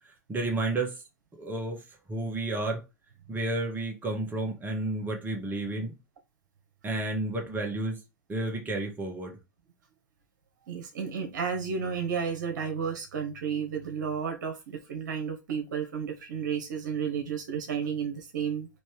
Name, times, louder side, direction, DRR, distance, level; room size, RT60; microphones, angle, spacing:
voice 1, 0.3-1.0 1.3-1.8 2.1-2.8 3.3-5.9 6.8-8.0 8.3-9.4, right 2 dB, 20° right, 1.4 m, -31 dB
voice 2, 10.7-18.7, right 6 dB, 70° right, 1.1 m, -32 dB
4.3 x 3.0 x 3.4 m
hypercardioid pair, 100°, 10 cm